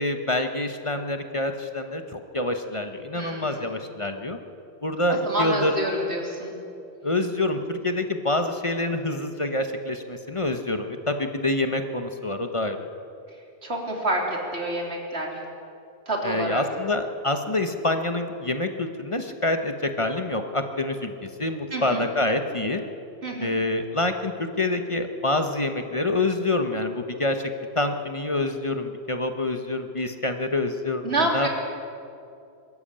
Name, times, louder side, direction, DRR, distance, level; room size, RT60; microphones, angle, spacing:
voice 1, 0.0-4.4 4.8-5.7 7.0-12.8 16.2-22.8 23.4-31.1 31.3-31.5, left 2 dB, 30° left, 6 dB, 1.1 m, -26 dB
voice 2, 3.1-3.7 5.1-6.5 13.6-15.4 16.1-16.6 21.7-22.1 23.2-23.5 31.0-31.5, right 1 dB, 85° right, 0 dB, 3.5 m, -28 dB
23.0 x 13.5 x 8.7 m, 2.6 s
omnidirectional pair, 1.1 m